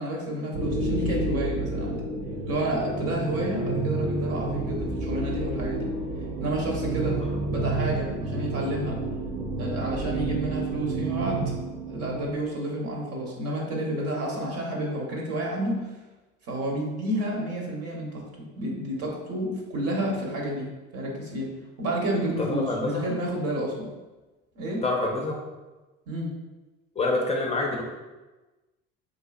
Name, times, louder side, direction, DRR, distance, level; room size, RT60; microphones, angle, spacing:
voice 1, 0.0-2.0 2.5-5.9 6.4-7.2 7.5-9.0 9.6-11.5 11.9-15.8 16.5-21.5 21.8-23.9 24.5-24.8 26.1-26.3, right 1 dB, 55° right, -1 dB, 1.1 m, -30 dB
sound 1, 0.5-12.5, right 2 dB, 70° right, 0.6 m, -30 dB
voice 2, 7.0-7.6 22.4-23.1 24.8-25.4 27.0-27.8, left 2 dB, 20° left, 0 dB, 0.5 m, -28 dB
3.8 x 2.6 x 2.4 m, 1.2 s
hypercardioid pair, 75°, 30 cm